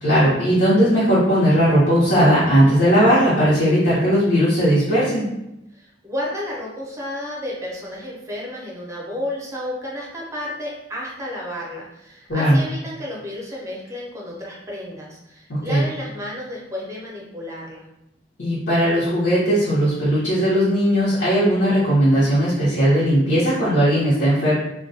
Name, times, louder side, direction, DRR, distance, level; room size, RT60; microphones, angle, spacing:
voice 1, 0.0-5.3 12.3-12.6 15.5-15.8 18.4-24.5, equal, 80° left, -11 dB, 0.8 m, -17 dB
voice 2, 5.7-17.9, left 1 dB, 15° right, -4 dB, 0.6 m, -32 dB
2.2 x 2.2 x 2.6 m, 0.87 s
head